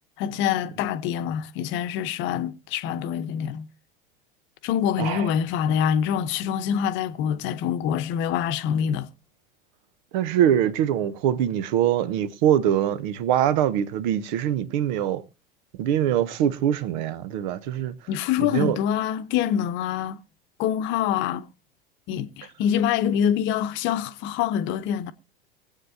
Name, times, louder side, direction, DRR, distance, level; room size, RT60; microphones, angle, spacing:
voice 1, 0.2-3.7 4.6-9.1 18.1-20.2 20.6-21.4 22.1-25.1, left 9 dB, 40° left, 0.9 m, -25 dB
voice 2, 10.1-15.2 15.8-17.9 18.4-18.8, right 10 dB, 50° right, 0.9 m, -23 dB
24.0 x 8.3 x 2.7 m
figure-of-eight pair, 80°, 29 cm